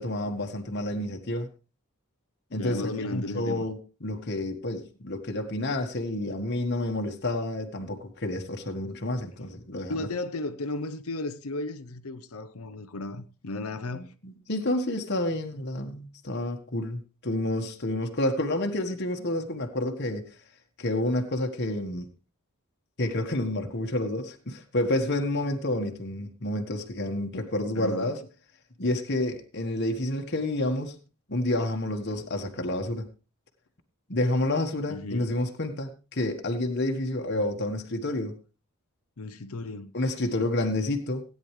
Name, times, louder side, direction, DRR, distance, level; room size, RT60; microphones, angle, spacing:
voice 1, 0.0-1.5 2.5-3.8 4.0-10.1 13.9-20.2 20.8-22.1 23.0-28.2 28.8-30.9 31.3-33.1 34.1-38.4 39.9-41.2, left 1 dB, 50° left, 1.5 m, -29 dB
voice 2, 2.5-3.7 9.9-14.1 27.7-28.1 34.9-35.3 39.2-39.9, left 2 dB, 80° left, 0.8 m, -34 dB
17.0 x 9.7 x 3.2 m
head